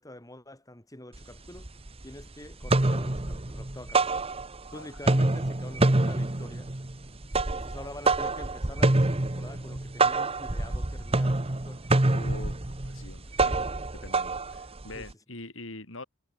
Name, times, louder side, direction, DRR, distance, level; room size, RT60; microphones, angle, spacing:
voice 1, 0.0-1.7 2.0-4.3 4.7-6.7 7.5-11.9 14.9-15.1, left 1 dB, 20° left, 6.9 m, -46 dB
sound 1, 1.2-1.3 1.6-2.2 2.5-4.7 5.0-15.1, right 2 dB, 30° right, 1.2 m, -26 dB
voice 2, 12.1-13.6 13.9-16.0, left 2 dB, 80° left, 6.6 m, -44 dB
head